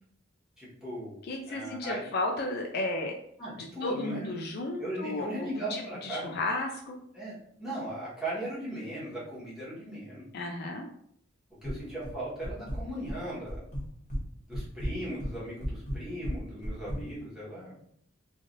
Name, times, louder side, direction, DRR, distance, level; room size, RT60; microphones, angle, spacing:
voice 1, 0.6-1.1 1.5-2.0 3.4-4.4 4.8-6.3 7.1-10.2 11.6-13.6 14.5-17.7, right 1 dB, ahead, -9 dB, 1.2 m, -38 dB
voice 2, 1.2-3.2 3.8-7.0 10.3-10.9, left 2 dB, 50° left, 1 dB, 0.4 m, -33 dB
sound 1, 11.6-12.1 12.4-13.2 13.5-14.2 14.5-17.0, equal, 35° left, 0.8 m, -34 dB
3.1 x 2.6 x 2.5 m, 0.67 s
head